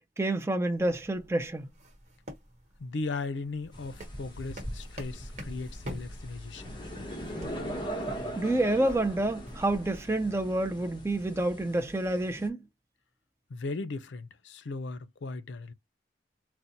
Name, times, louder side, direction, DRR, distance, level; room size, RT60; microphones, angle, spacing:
voice 1, 0.2-1.7 8.4-12.6, right 1 dB, 15° right, 0.4 m, -28 dB
sound 1, 0.7-10.0, equal, 40° right, 1.0 m, -45 dB
voice 2, 2.8-6.8 13.5-15.7, left 3 dB, 80° left, 0.5 m, -37 dB
sound 2, 3.7-12.5, equal, 25° left, 0.9 m, -41 dB
4.0 x 2.1 x 2.8 m
head